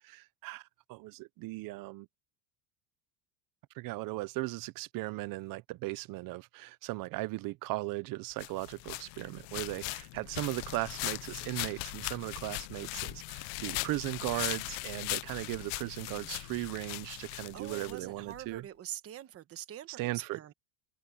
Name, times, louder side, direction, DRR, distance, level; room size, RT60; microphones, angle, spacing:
voice 1, 0.0-2.1 3.8-18.6 20.0-20.5, right 20 dB, 45° right, 0.5 m, -37 dB
sound 1, 8.4-18.4, left 27 dB, 80° left, 0.6 m, -39 dB
voice 2, 17.3-20.5, right 12 dB, 30° right, 1.1 m, -44 dB
cardioid pair, 165°, 48 cm